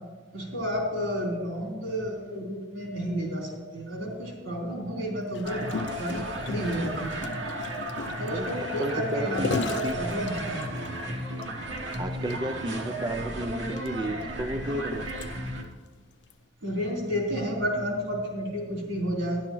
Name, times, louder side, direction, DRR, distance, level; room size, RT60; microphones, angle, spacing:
voice 1, 0.3-7.2 8.2-10.7 16.6-19.4, equal, 85° right, -3 dB, 3.7 m, -31 dB
Gurgling, 5.3-10.9 11.4-11.5 11.8-12.0 12.3-12.4 13.2-15.7 16.3-16.5, left 4 dB, 60° left, 0.5 m, -36 dB
sound 1, 5.4-15.6, right 1 dB, 70° right, 1.1 m, -34 dB
voice 2, 8.3-10.0 12.0-15.0, right 1 dB, 25° right, 6 dB, 0.3 m, -33 dB
12.0 x 11.0 x 3.0 m, 1.4 s
head